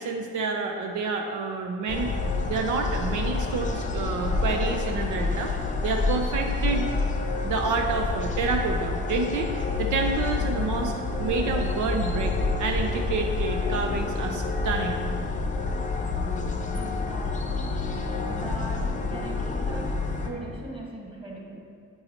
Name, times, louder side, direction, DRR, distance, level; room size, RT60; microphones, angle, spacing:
voice 1, 0.0-2.1 2.5-5.5 5.8-6.9 7.4-9.5 9.8-10.9 11.2-15.1, right 4 dB, 75° right, 3 dB, 0.6 m, -28 dB
sound 1, 1.9-20.3, left 3 dB, 25° left, 0.7 m, -28 dB
voice 2, 16.7-17.7 18.3-19.9 20.2-21.6, right 1 dB, 15° right, -3 dB, 1.6 m, -40 dB
8.1 x 5.5 x 2.9 m, 2.2 s
cardioid pair, 90°, 30 cm